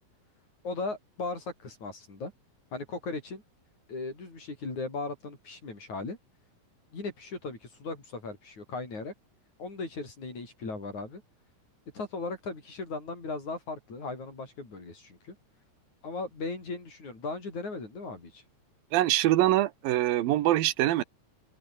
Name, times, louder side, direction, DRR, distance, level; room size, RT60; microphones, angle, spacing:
voice 1, 0.6-2.3 2.7-3.4 3.9-6.2 6.9-9.1 9.6-11.2 11.9-15.4 16.0-18.4, left 3 dB, 55° left, 8.4 m, -37 dB
voice 2, 18.9-21.0, right 14 dB, 90° right, 2.9 m, -24 dB
open air
omnidirectional pair, 4.0 m